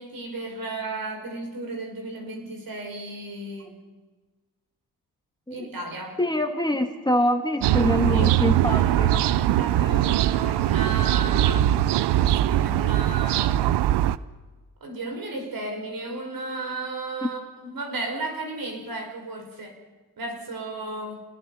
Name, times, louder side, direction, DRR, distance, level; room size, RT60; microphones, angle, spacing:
voice 1, 0.0-3.8 5.5-6.2 8.1-13.6 14.8-19.8 20.2-21.2, right 2 dB, 60° right, 3 dB, 5.8 m, -34 dB
voice 2, 6.2-9.2, left 1 dB, 10° left, 5 dB, 2.2 m, -25 dB
sound 1, 7.6-14.2, right 13 dB, 90° right, 0.7 m, -21 dB
28.5 x 20.5 x 5.8 m, 1.3 s
cardioid pair, 60°, 40 cm